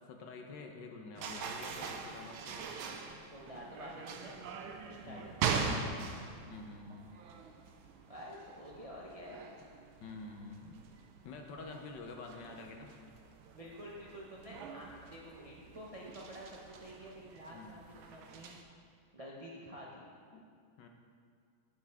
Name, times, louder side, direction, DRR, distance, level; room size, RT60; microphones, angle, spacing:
voice 1, 0.0-2.8 5.0-5.4 6.5-7.1 10.0-10.8 11.2-12.9 17.5-17.8 20.3-20.5 20.8-20.9, left 3 dB, 65° left, 3 dB, 1.3 m, -48 dB
sound 1, 1.2-18.6, right 5 dB, 80° right, 1.5 m, -42 dB
voice 2, 3.3-4.4 4.7-5.7 8.1-9.4 13.5-18.6 19.1-20.0, equal, 40° right, -4 dB, 0.4 m, -49 dB
10.0 x 9.7 x 3.5 m, 2.2 s
omnidirectional pair, 2.3 m